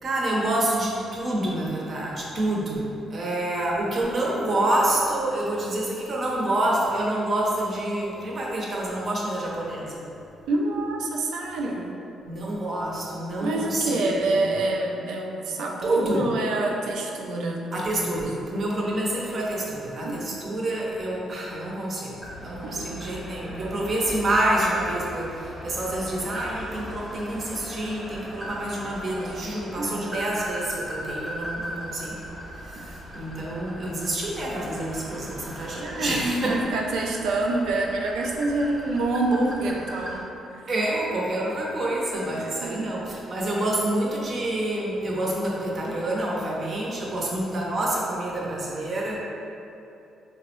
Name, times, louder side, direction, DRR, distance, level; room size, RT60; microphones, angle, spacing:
voice 1, 0.0-10.0 12.3-14.7 15.8-16.2 17.7-22.1 22.4-32.2 32.7-36.6 40.7-49.2, right 1 dB, 45° right, -4 dB, 0.6 m, -27 dB
voice 2, 10.5-12.0 13.4-18.2 20.0-20.6 22.6-23.2 29.8-30.3 32.8-32.9 35.8-40.3 40.5-40.6 42.3-42.9 47.2-47.7, right 2 dB, 85° right, 0 dB, 0.3 m, -27 dB
sound 1, 22.2-40.2, equal, ahead, 0.8 m, -38 dB
3.4 x 2.0 x 2.9 m, 2.8 s
cardioid pair, 90°, 0 cm